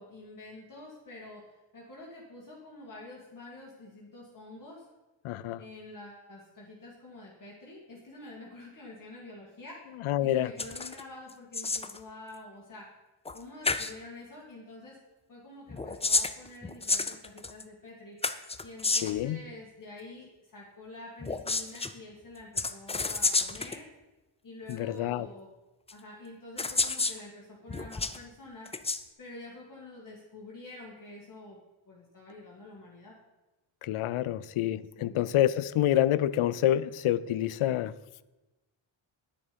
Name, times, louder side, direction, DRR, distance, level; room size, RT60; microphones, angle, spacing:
voice 1, 0.0-4.9 5.6-9.9 10.2-12.9 13.3-15.0 15.3-18.2 18.6-23.9 24.4-25.5 25.9-28.7 29.2-31.6 31.9-33.2 35.0-35.3, left 2 dB, 40° left, -4 dB, 2.0 m, -47 dB
voice 2, 5.2-5.6 10.0-10.5 19.0-19.4 24.7-25.3 33.8-37.9, left 12 dB, 75° left, 18 dB, 0.6 m, -27 dB
sound 1, 10.6-11.0 11.3-12.0 13.3-13.4 13.6-13.9 15.7-17.6 18.2-19.2 21.2-21.9 22.6-23.8 24.7-24.8 25.9-26.0 26.6-27.2 27.7-28.2 28.7-29.0, left 3 dB, 15° left, 0.3 m, -30 dB
10.0 x 9.8 x 5.2 m, 1.1 s
wide cardioid pair, 155°, 50 cm